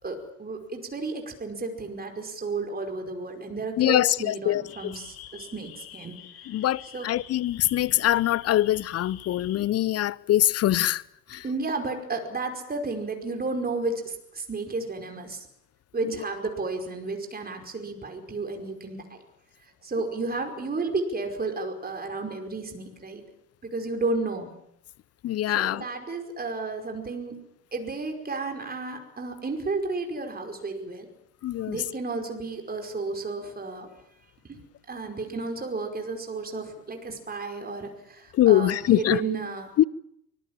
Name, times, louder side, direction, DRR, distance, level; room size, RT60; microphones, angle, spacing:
voice 1, 0.0-6.5 6.9-7.1 11.4-15.5 15.9-19.2 19.8-23.2 23.6-24.5 25.5-27.4 27.7-31.1 31.7-33.9 34.4-34.6 34.9-39.7, right 3 dB, 20° right, 5.2 m, -32 dB
voice 2, 3.8-4.9 6.5-11.0 11.3-11.4 25.2-25.8 31.4-31.8 38.3-39.2 39.8-39.9, left 13 dB, 35° left, 0.9 m, -23 dB
sound 1, 4.7-9.7, left 11 dB, 50° left, 3.1 m, -46 dB
24.5 x 22.0 x 7.4 m
figure-of-eight pair, 70°, 44 cm